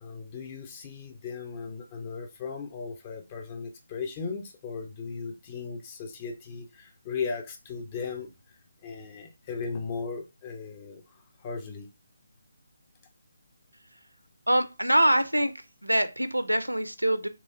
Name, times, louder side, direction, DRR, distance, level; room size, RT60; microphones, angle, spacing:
voice 1, 0.0-8.3 8.8-11.0 11.4-11.9, left 5 dB, 20° left, 5 dB, 0.6 m, -37 dB
voice 2, 14.5-15.5 15.8-17.3, right 1 dB, 85° right, 11 dB, 0.5 m, -24 dB
3.5 x 3.0 x 2.7 m, 0.27 s
figure-of-eight pair, 150°, 0 cm